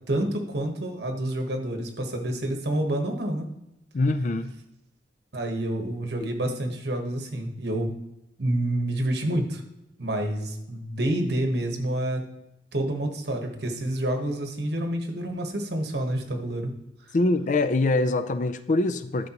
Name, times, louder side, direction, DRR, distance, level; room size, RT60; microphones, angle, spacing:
voice 1, 0.1-3.5 5.3-7.9 8.4-9.6 10.0-12.2 12.7-16.7, right 1 dB, 65° right, 1.2 m, -28 dB
voice 2, 3.9-4.5 6.2-6.3 17.1-19.3, left 2 dB, 45° left, 0.4 m, -24 dB
11.5 x 5.2 x 3.0 m
head